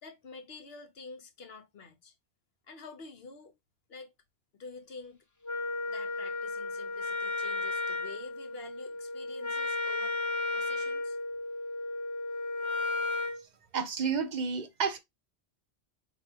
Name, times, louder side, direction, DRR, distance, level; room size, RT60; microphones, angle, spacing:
voice 1, 0.0-2.1 2.7-3.5 3.9-4.1 4.5-5.2 5.9-10.3 10.5-11.2, left 4 dB, 60° left, 1.1 m, -48 dB
Wind instrument woodwind instrument, 5.4-13.4, left 2 dB, 20° left, 0.5 m, -34 dB
voice 2, 13.7-15.0, right 6 dB, 45° right, 0.7 m, -30 dB
4.6 x 3.0 x 2.8 m
omnidirectional pair, 1.2 m